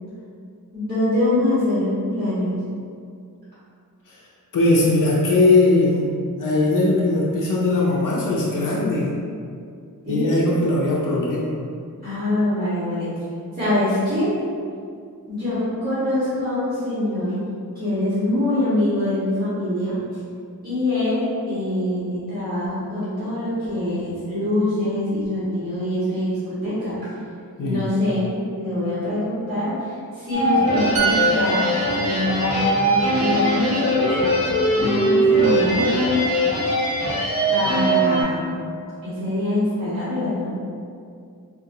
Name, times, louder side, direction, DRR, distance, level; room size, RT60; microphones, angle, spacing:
voice 1, 0.7-2.6 10.0-10.4 12.0-13.1 13.5-14.3 15.3-17.4 17.7-20.0 20.6-26.9 27.6-31.7 32.0-34.1 34.7-36.2 37.5-38.6 39.0-40.5, left 1 dB, 25° right, -14 dB, 1.4 m, -24 dB
voice 2, 4.5-6.1 6.4-9.1 10.1-11.6 27.6-27.9, left 2 dB, 65° left, -6 dB, 0.6 m, -19 dB
sound 1, 30.3-38.2, right 1 dB, 40° left, 1.2 m, -21 dB
sound 2, 31.0-34.6 34.9-35.1, right 7 dB, 80° right, 0.5 m, -28 dB
3.8 x 2.4 x 2.7 m, 2.3 s
wide cardioid pair, 75°, 35 cm